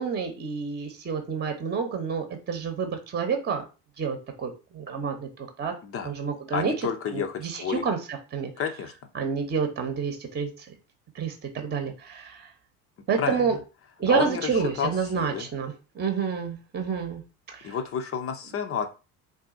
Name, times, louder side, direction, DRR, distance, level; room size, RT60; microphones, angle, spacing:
voice 1, 0.0-3.6 4.0-5.7 6.0-6.7 7.1-8.5 9.1-10.7 11.1-12.5 13.1-13.6 14.0-17.2 17.5-17.8, right 6 dB, 20° right, 6 dB, 1.0 m, -29 dB
voice 2, 6.5-7.8 8.6-8.9 13.2-13.4 14.1-15.5 17.6-18.9, left 7 dB, 30° left, 7 dB, 0.7 m, -30 dB
3.9 x 2.6 x 3.8 m, 0.31 s
figure-of-eight pair, 70°, 44 cm